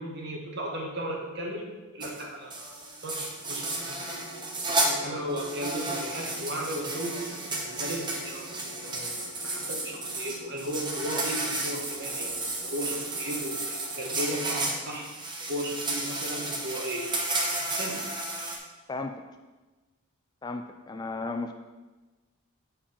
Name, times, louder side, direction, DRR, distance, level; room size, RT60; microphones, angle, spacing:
voice 1, 0.0-2.8 3.0-4.2 4.6-7.3 7.6-8.4 8.8-9.1 9.4-12.3 12.6-15.1 15.5-17.1 17.6-18.0, right 1 dB, 50° right, -1 dB, 1.5 m, -35 dB
sound 1, 2.0-2.2 2.5-4.9 5.3-18.6, right 2 dB, 20° right, 0.9 m, -33 dB
sound 2, 3.4-13.5, right 1 dB, 65° left, 1.7 m, -48 dB
voice 2, 18.9-19.2 20.4-21.5, left 3 dB, 20° left, 6 dB, 0.3 m, -34 dB
7.4 x 4.4 x 5.7 m, 1.2 s
head